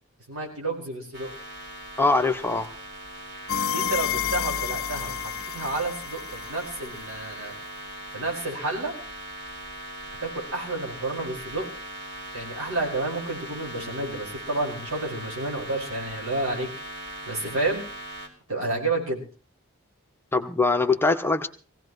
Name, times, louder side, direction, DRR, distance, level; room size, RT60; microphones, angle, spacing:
voice 1, 0.3-1.3 3.7-7.5 8.1-8.9 10.2-11.7 12.3-16.7 17.3-17.8 18.5-19.2, right 2 dB, 85° right, 0 dB, 5.1 m, -30 dB
sound 1, 1.1-18.3, right 1 dB, 55° right, 4.2 m, -40 dB
voice 2, 2.0-2.7 20.3-21.5, left 3 dB, 10° left, 7 dB, 0.8 m, -22 dB
sound 2, 3.5-7.2, left 8 dB, 65° left, 0.6 m, -30 dB
21.0 x 16.5 x 3.1 m, 0.36 s
head